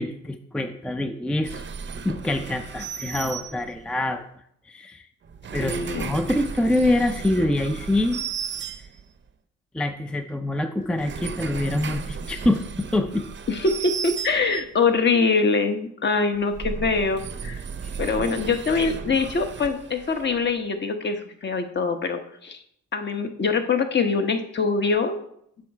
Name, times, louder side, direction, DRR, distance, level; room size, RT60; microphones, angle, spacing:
voice 1, 0.0-1.6 2.0-4.2 4.7-5.0 5.5-8.2 9.7-13.3, left 1 dB, 5° left, 7 dB, 0.4 m, -25 dB
sound 1, 1.4-4.0 5.2-9.3 10.8-14.8 16.3-20.5, right 6 dB, 40° right, 0.7 m, -35 dB
voice 2, 5.6-6.1 13.5-17.6 18.0-22.6 22.9-25.2, left 4 dB, 35° left, 6 dB, 1.0 m, -24 dB
7.5 x 5.4 x 4.8 m, 0.72 s
cardioid pair, 90°, 30 cm